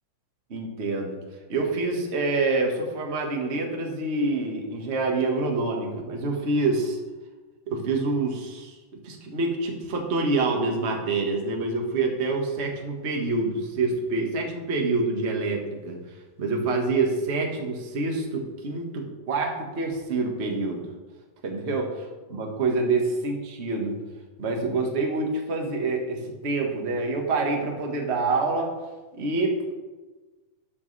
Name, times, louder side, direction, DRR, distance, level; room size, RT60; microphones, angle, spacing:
voice 1, 0.5-1.2 1.5-7.0 7.7-8.8 9.0-16.0 16.4-20.8 21.4-22.0 22.3-24.0 24.4-28.7 29.1-29.6, right 3 dB, 35° right, 1 dB, 1.0 m, -26 dB
12.5 x 8.4 x 3.4 m, 1.2 s
omnidirectional pair, 3.6 m